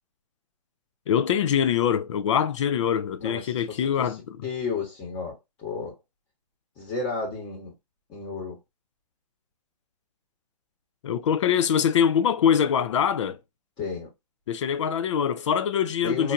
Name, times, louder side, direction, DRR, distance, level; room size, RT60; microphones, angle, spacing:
voice 1, 1.1-4.4 11.0-13.4 14.5-16.3, left 8 dB, 45° left, 0.4 m, -23 dB
voice 2, 3.2-4.1 4.4-5.9 6.8-7.7 8.1-8.6 13.8-14.1 16.0-16.3, left 4 dB, 25° left, 1.2 m, -32 dB
4.5 x 2.5 x 2.5 m
hypercardioid pair, 140°, 21 cm